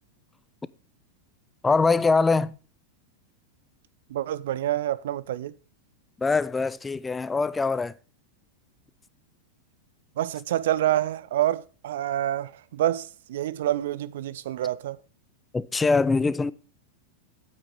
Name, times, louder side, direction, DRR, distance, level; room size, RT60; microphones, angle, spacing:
voice 1, 1.6-2.6 6.2-7.9 15.5-16.5, left 4 dB, 10° left, 0.4 m, -23 dB
voice 2, 4.1-5.5 10.2-15.0, right 12 dB, 55° right, 0.5 m, -27 dB
8.8 x 8.8 x 4.7 m
figure-of-eight pair, 90°, 0 cm